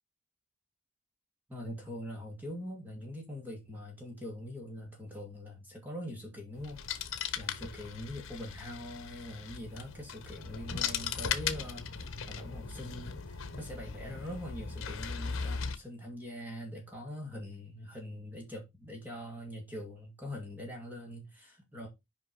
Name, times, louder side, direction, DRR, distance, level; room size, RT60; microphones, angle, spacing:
voice 1, 1.5-21.9, left 1 dB, 10° right, 2.3 m, -43 dB
sound 1, 6.6-15.8, left 6 dB, 80° left, 1.0 m, -38 dB
5.8 x 5.1 x 4.7 m
head